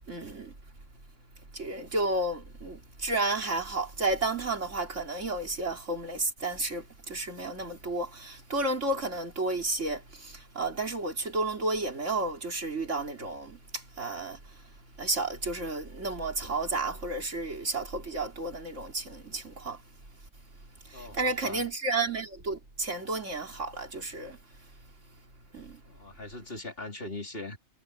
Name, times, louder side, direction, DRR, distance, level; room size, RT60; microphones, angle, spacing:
voice 1, 0.1-0.5 1.5-14.4 15.0-19.8 20.9-24.4 25.5-25.8, right 2 dB, 90° right, 3.9 m, -32 dB
voice 2, 20.9-21.7 25.9-27.6, left 2 dB, 50° left, 4.0 m, -40 dB
omnidirectional pair, 1.2 m